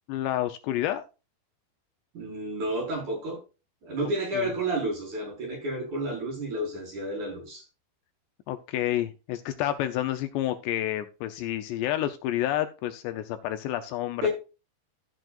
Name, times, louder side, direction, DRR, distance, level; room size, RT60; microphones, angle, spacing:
voice 1, 0.1-1.0 4.3-4.5 8.5-14.3, left 13 dB, 80° left, 8 dB, 2.7 m, -29 dB
voice 2, 2.1-3.4 3.8-7.6 14.2-14.3, right 1 dB, 40° right, -1 dB, 6.1 m, -30 dB
14.5 x 7.6 x 2.5 m, 0.30 s
omnidirectional pair, 5.2 m